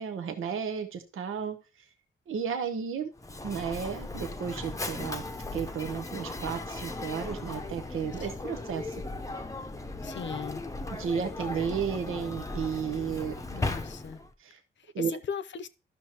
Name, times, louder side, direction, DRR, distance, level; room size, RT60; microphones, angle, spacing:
voice 1, 0.0-1.6 2.3-3.1 3.4-5.2 5.5-9.0 11.0-13.3 14.4-14.6 14.9-15.1, right 7 dB, 90° right, 0.9 m, -33 dB
Mechanisms, 3.2-14.3, left 2 dB, 15° left, 0.7 m, -37 dB
voice 2, 10.0-10.6 13.5-14.2 14.8-15.7, left 7 dB, 65° left, 0.7 m, -38 dB
12.5 x 6.1 x 2.9 m
cardioid pair, 95°, 20 cm